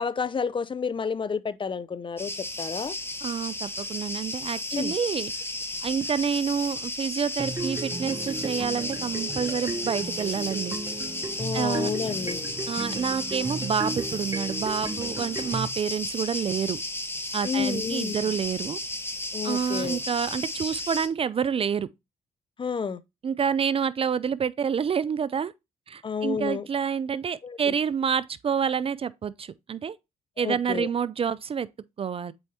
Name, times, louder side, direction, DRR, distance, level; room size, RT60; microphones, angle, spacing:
voice 1, 0.0-2.3 2.6-3.0 4.7-4.9 11.4-12.4 17.4-18.2 19.3-20.0 22.6-23.0 26.0-26.6 27.4-27.7 30.4-30.9, left 6 dB, 30° left, 0.5 m, -30 dB
sound 1, 2.2-21.1, left 2 dB, 15° left, 1.1 m, -34 dB
voice 2, 3.2-5.3 5.8-10.8 11.5-11.9 12.7-16.8 17.3-18.8 19.4-21.9 23.2-25.5 25.9-30.0 30.4-31.7 32.0-32.3, right 7 dB, 35° right, 0.4 m, -28 dB
sound 2, 7.4-15.7, right 2 dB, 20° right, 0.9 m, -35 dB
sound 3, 8.1-13.1, right 5 dB, 80° right, 3.1 m, -53 dB
7.6 x 4.5 x 2.7 m
supercardioid pair, 55°, 16 cm